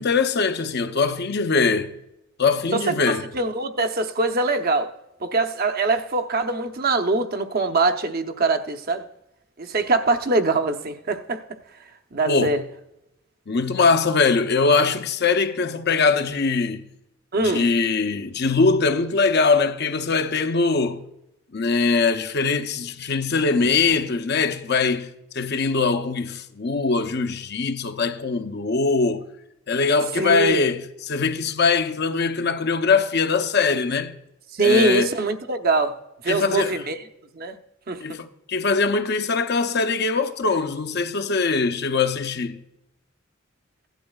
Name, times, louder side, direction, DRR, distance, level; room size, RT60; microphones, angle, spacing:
voice 1, 0.0-1.9 2.4-3.2 12.3-12.6 13.5-16.8 17.4-21.0 21.5-25.1 25.3-29.2 29.7-34.1 34.6-35.1 36.3-36.8 38.0-42.6, left 4 dB, 50° left, 0.7 m, -22 dB
voice 2, 2.7-4.9 5.2-9.0 9.6-11.4 12.1-12.6 17.3-17.7 30.2-30.7 34.5-35.9 36.2-37.0 37.3-37.6 37.9-38.2, right 3 dB, 45° right, 0.8 m, -23 dB
17.0 x 11.5 x 2.4 m
head